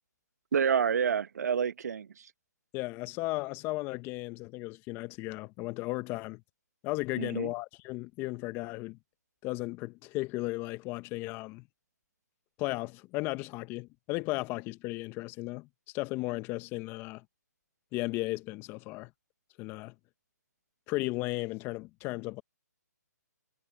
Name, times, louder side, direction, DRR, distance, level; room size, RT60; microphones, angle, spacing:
voice 1, 0.5-2.3 7.2-7.5, right 7 dB, 65° right, 1.5 m, -28 dB
voice 2, 2.7-6.4 6.8-9.0 9.4-11.7 12.6-15.7 15.9-17.2 17.9-19.1 19.6-19.9 20.9-22.4, left 21 dB, 25° left, 1.3 m, -35 dB
hypercardioid pair, 145°, 9 cm